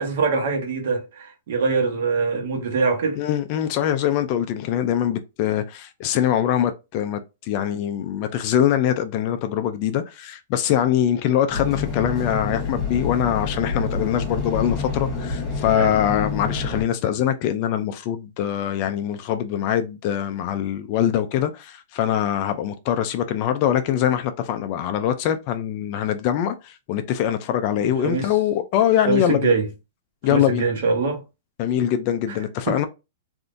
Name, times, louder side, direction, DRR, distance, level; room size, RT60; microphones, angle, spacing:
voice 1, 0.0-3.2 15.7-15.9 27.8-28.3 29.1-29.7 30.3-31.2 32.3-32.4 32.7-32.9, right 4 dB, 55° right, 1.0 m, -23 dB
voice 2, 3.2-29.5 30.2-30.7 31.6-32.9, left 10 dB, 35° left, 0.3 m, -23 dB
sound 1, 11.5-16.8, left 4 dB, 5° left, 0.9 m, -28 dB
3.5 x 2.5 x 2.5 m
hypercardioid pair, 165°, 0 cm